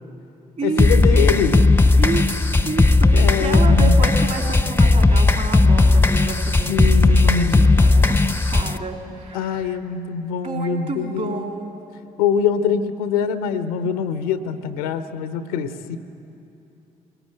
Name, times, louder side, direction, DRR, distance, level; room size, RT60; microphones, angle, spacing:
voice 1, 0.6-1.8 3.1-4.0 6.7-7.8 9.3-11.5 12.2-16.0, left 6 dB, 75° left, 11 dB, 0.8 m, -24 dB
sound 1, 0.8-8.8, left 2 dB, 10° left, 0.8 m, -16 dB
voice 2, 2.6-8.2 8.5-9.8 10.4-11.7, right 4 dB, 45° right, 2 dB, 3.3 m, -30 dB
22.0 x 19.0 x 9.2 m, 2.7 s
figure-of-eight pair, 40°, 18 cm